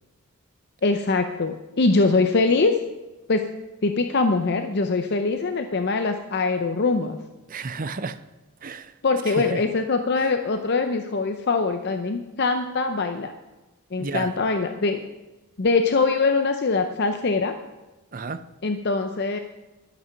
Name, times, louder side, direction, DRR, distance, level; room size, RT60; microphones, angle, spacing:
voice 1, 0.8-2.8 3.3-3.5 3.8-7.2 9.0-13.3 13.9-15.0 15.6-17.5 18.6-19.4, left 3 dB, 50° left, 0.6 m, -23 dB
voice 2, 7.5-8.2 8.6-8.9 9.3-9.6 10.2-10.3 14.0-14.3 18.1-18.4, right 4 dB, 40° right, 0.6 m, -32 dB
12.5 x 8.3 x 5.9 m
head